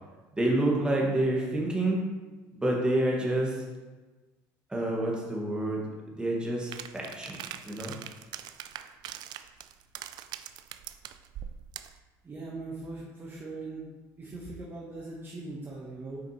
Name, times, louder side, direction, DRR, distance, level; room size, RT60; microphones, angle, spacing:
voice 1, 0.4-2.0 2.5-3.6 4.7-5.8 6.2-8.0, right 1 dB, 10° right, -3 dB, 1.5 m, -28 dB
sound 1, 6.7-12.0, right 11 dB, 65° right, 0.3 m, -42 dB
voice 2, 12.2-13.9 14.2-16.2, right 3 dB, 30° right, -4 dB, 1.1 m, -40 dB
6.7 x 5.0 x 2.9 m, 1.3 s
supercardioid pair, 95°, 8 cm